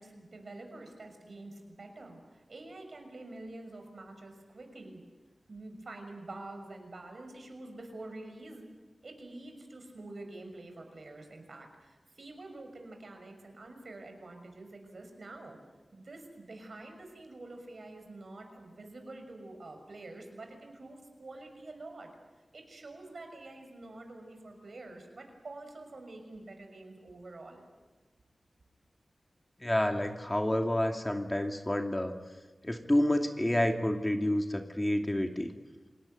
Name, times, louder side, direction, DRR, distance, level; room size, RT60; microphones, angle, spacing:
voice 1, 0.0-5.0 5.5-8.7 9.0-15.6 15.9-22.1 22.5-27.6, right 2 dB, 70° right, 5 dB, 6.2 m, -47 dB
voice 2, 29.6-32.1 32.6-35.5, left 1 dB, 20° left, 4 dB, 2.5 m, -29 dB
28.0 x 18.5 x 9.4 m, 1.3 s
wide cardioid pair, 65°, 0 cm